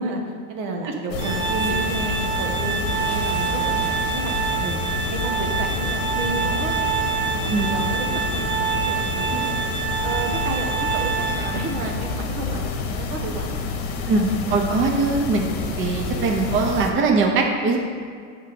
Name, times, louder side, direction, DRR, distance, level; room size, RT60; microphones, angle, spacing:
voice 1, 0.0-4.7 5.1-6.8 7.3-9.5 10.0-13.8, right 2 dB, 85° right, 2 dB, 1.1 m, -32 dB
sound 1, 1.1-16.9, left 4 dB, 60° left, 0.9 m, -28 dB
Organ, 1.2-11.9, right 6 dB, 15° right, 0.3 m, -26 dB
Bowed string instrument, 9.7-14.1, left 6 dB, 30° left, 1.0 m, -41 dB
voice 2, 14.1-17.8, right 3 dB, 30° right, 2 dB, 0.7 m, -21 dB
6.4 x 3.6 x 5.9 m, 2.1 s
supercardioid pair, 125°, 39 cm